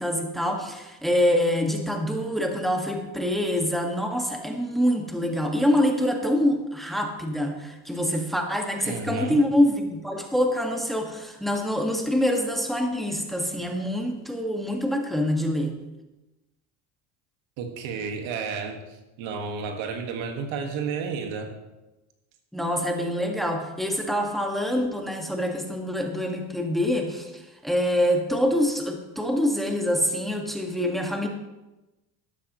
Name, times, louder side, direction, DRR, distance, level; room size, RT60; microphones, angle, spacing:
voice 1, 0.0-15.8 22.5-31.3, equal, ahead, 2 dB, 1.7 m, -25 dB
voice 2, 8.8-9.4 17.6-18.8 19.2-21.5, right 5 dB, 70° right, 4 dB, 1.8 m, -31 dB
12.5 x 12.0 x 3.1 m, 1.1 s
supercardioid pair, 85°, 48 cm